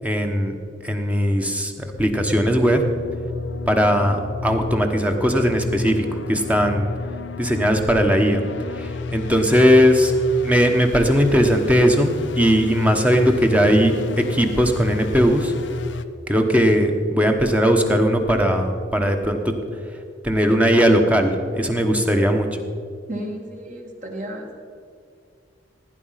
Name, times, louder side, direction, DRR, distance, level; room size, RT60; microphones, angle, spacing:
voice 1, 0.0-0.5 0.8-2.8 3.7-4.2 4.4-6.9 7.4-8.4 8.7-10.1 10.4-15.5 16.3-19.5 20.2-22.6, equal, 10° right, 4 dB, 1.2 m, -18 dB
sound 1, 1.9-16.0, left 3 dB, 80° left, 0.7 m, -32 dB
voice 2, 23.1-24.6, right 1 dB, 40° right, 1 dB, 2.4 m, -33 dB
17.0 x 10.0 x 5.8 m, 2.2 s
head